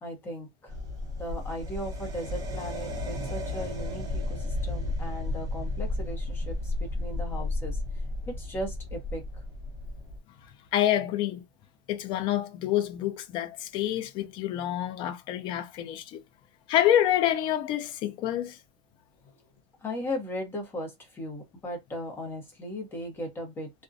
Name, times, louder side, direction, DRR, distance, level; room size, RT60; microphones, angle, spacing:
voice 1, 0.0-0.7 1.2-7.8 8.3-9.2 19.8-23.7, equal, 15° left, 0.7 m, -37 dB
sound 1, 0.7-10.2, left 2 dB, 25° right, 0.7 m, -33 dB
voice 2, 10.7-11.4 11.9-16.2 16.7-18.5, left 12 dB, 30° left, 0.4 m, -27 dB
2.5 x 2.1 x 2.5 m
supercardioid pair, 170°, 16 cm